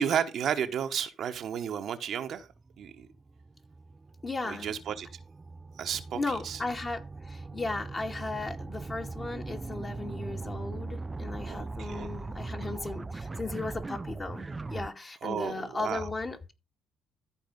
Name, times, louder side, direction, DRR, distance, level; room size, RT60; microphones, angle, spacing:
voice 1, 0.0-2.5 2.8-3.1 4.4-5.1 5.8-6.6 11.4-12.2 15.2-16.1, right 8 dB, 60° right, 1.2 m, -32 dB
sound 1, 2.4-14.9, right 3 dB, 25° right, 0.4 m, -40 dB
voice 2, 4.2-4.7 6.1-16.5, left 3 dB, 30° left, 2.4 m, -36 dB
14.0 x 4.7 x 5.3 m
hypercardioid pair, 50°, 0 cm